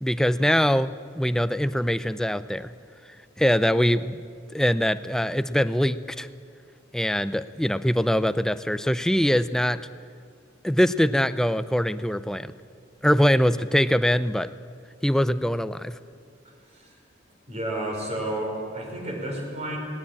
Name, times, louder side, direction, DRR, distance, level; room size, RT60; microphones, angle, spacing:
voice 1, 0.0-2.7 3.4-4.2 4.5-6.3 6.9-9.8 10.6-12.5 13.0-14.5 15.0-15.9, equal, 5° left, 13 dB, 0.4 m, -23 dB
voice 2, 17.5-19.8, right 1 dB, 35° right, 1 dB, 4.9 m, -31 dB
18.5 x 18.5 x 8.7 m, 2.2 s
head